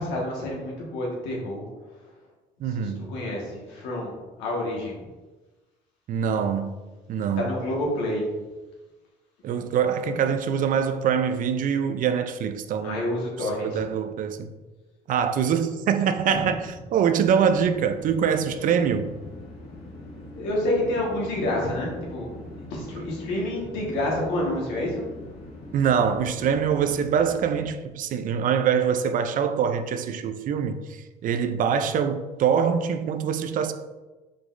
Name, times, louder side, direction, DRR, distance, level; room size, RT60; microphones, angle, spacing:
voice 1, 0.0-1.7 2.6-4.1 4.4-4.9 7.4-8.3 12.8-13.8 16.3-16.4 20.3-25.0, left 1 dB, 85° left, 1.5 m, -28 dB
voice 2, 2.6-3.1 6.1-6.8 7.1-7.6 9.4-13.0 13.4-14.5 15.1-19.1 25.7-33.7, right 7 dB, 50° right, 0.4 m, -24 dB
sound 1, 17.1-27.7, left 1 dB, 65° left, 1.1 m, -42 dB
4.9 x 3.8 x 2.5 m
cardioid pair, 105°, 18 cm